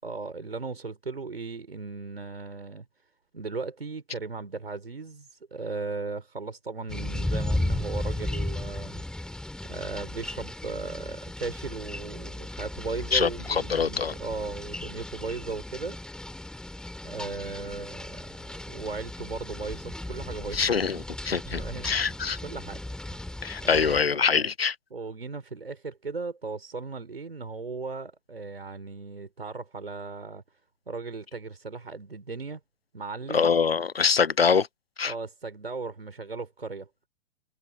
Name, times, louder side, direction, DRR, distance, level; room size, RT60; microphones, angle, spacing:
voice 1, 0.0-2.9 3.3-9.4 9.7-16.0 17.0-20.7 21.5-24.5 24.9-30.4 30.9-32.6 32.9-33.5 35.0-36.9, right 4 dB, 75° right, 5.2 m, -37 dB
sound 1, 6.9-24.0, left 1 dB, ahead, 5.9 m, -35 dB
voice 2, 13.1-14.1 20.5-22.4 23.4-24.8 33.3-34.7 35.0-35.1, left 6 dB, 75° left, 1.0 m, -24 dB
figure-of-eight pair, 115°, 30 cm